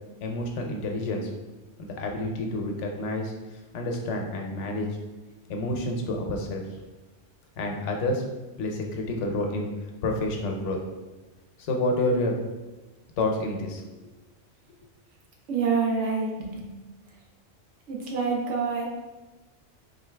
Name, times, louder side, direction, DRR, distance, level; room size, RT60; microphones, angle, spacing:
voice 1, 0.2-1.3 1.8-3.3 3.7-4.9 5.5-6.7 7.6-8.2 8.6-9.7 10.0-10.8 11.7-12.3 13.2-13.8, left 2 dB, 80° left, 2 dB, 1.0 m, -28 dB
voice 2, 15.5-16.7 17.9-18.8, right 5 dB, 80° right, -1 dB, 1.1 m, -27 dB
4.0 x 2.7 x 3.3 m, 1.1 s
omnidirectional pair, 1.2 m